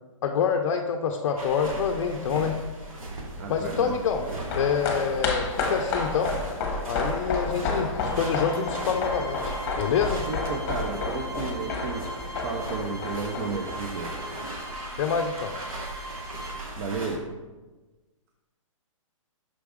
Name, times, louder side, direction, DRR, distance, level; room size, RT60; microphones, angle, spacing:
voice 1, 0.2-2.6 3.5-4.2 4.5-6.3 6.9-10.2 15.0-15.6, left 6 dB, 55° left, 3 dB, 0.5 m, -26 dB
sound 1, 1.4-17.2, right 1 dB, 85° right, 1.5 m, -38 dB
voice 2, 3.4-3.9 4.2-4.4 10.3-12.0 12.4-14.1 16.8-17.2, right 4 dB, 40° right, 2 dB, 0.6 m, -32 dB
sound 2, 4.2-14.8 15.0-15.1, left 4 dB, 30° left, 0.9 m, -31 dB
sound 3, 8.0-16.6, right 1 dB, ahead, 0.7 m, -41 dB
6.2 x 4.6 x 3.6 m, 1.2 s
hypercardioid pair, 155°, 17 cm